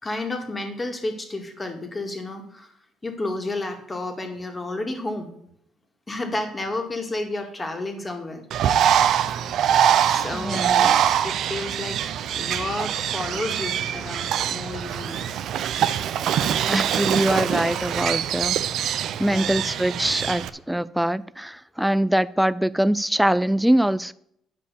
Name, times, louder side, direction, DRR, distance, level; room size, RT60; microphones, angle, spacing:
voice 1, 0.0-2.7 3.0-5.3 6.1-8.4 10.1-12.0 12.4-15.2 19.2-19.5, left 2 dB, 20° left, 4 dB, 2.0 m, -31 dB
Bird, 8.5-20.5, right 9 dB, 65° right, 0.6 m, -23 dB
voice 2, 10.3-10.9 16.6-18.6 19.2-24.1, right 1 dB, 5° right, 17 dB, 0.4 m, -23 dB
10.5 x 5.2 x 6.8 m, 0.70 s
cardioid pair, 110°, 0 cm